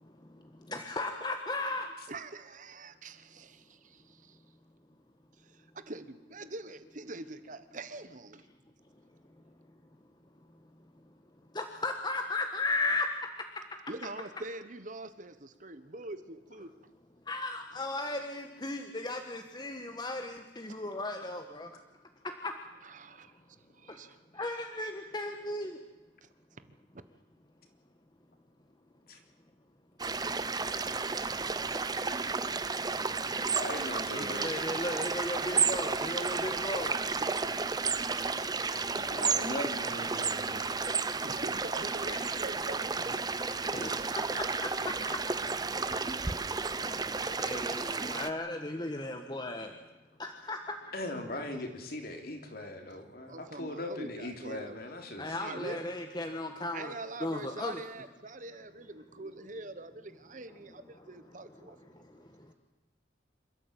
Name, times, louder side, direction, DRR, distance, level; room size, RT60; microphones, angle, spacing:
voice 1, 0.7-1.9 11.5-13.1 17.3-21.7 24.4-25.8 34.1-36.9 42.1-42.2 43.7-43.9 44.3-44.7 47.4-49.7 50.2-50.6 55.2-56.9 57.2-57.8, left 2 dB, 25° left, 5 dB, 1.4 m, -35 dB
voice 2, 2.1-4.4 5.4-8.4 13.9-16.7 22.8-23.3 23.7-24.6 26.2-26.3 26.6-26.7 41.2-43.5 53.3-54.8 55.4-55.9 56.7-62.0, right 2 dB, 45° right, 12 dB, 1.2 m, -44 dB
sound 1, 30.0-48.3, right 4 dB, 20° right, 0.8 m, -32 dB
voice 3, 33.5-34.5 38.9-40.7 50.9-55.8, left 1 dB, 55° left, 4 dB, 3.4 m, -39 dB
27.0 x 13.5 x 9.0 m, 1.1 s
head